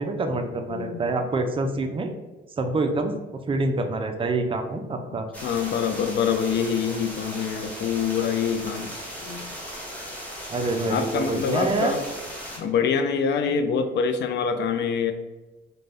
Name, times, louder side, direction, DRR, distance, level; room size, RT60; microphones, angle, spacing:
voice 1, 0.0-2.1 2.6-3.1 3.5-5.3 10.5-11.9, right 2 dB, 25° right, 6 dB, 0.4 m, -26 dB
voice 2, 0.7-1.1 5.4-8.9 9.2-9.5 10.9-12.0 12.6-15.1, left 6 dB, 60° left, 8 dB, 0.4 m, -25 dB
sound 1, 5.3-12.6, equal, 5° left, 0.9 m, -37 dB
2.5 x 2.2 x 3.3 m, 1.1 s
cardioid pair, 90°, 20 cm